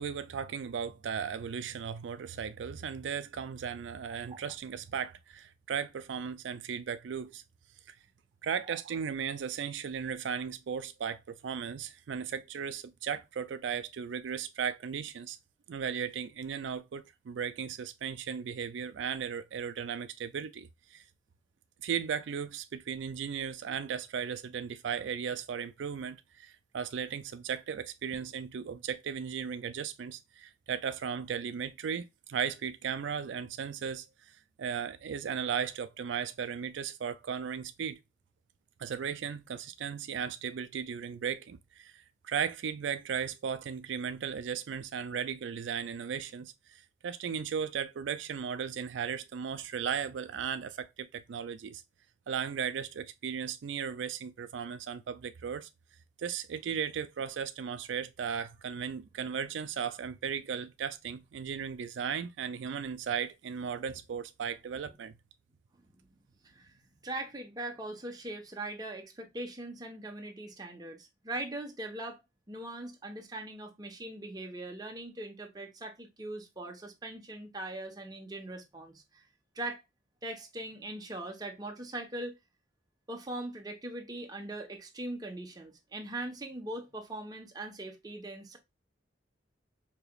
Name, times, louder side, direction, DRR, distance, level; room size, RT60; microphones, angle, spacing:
voice 1, 0.0-7.4 7.9-8.0 8.4-15.4 15.7-21.0 21.8-38.0 38.8-51.8 52.3-55.7 56.2-65.1, right 7 dB, 80° right, 0.4 m, -36 dB
voice 2, 66.4-72.2 72.5-79.2 79.5-79.8 80.2-82.3 83.1-88.6, right 1 dB, 20° right, 0.9 m, -41 dB
4.8 x 2.9 x 2.2 m
head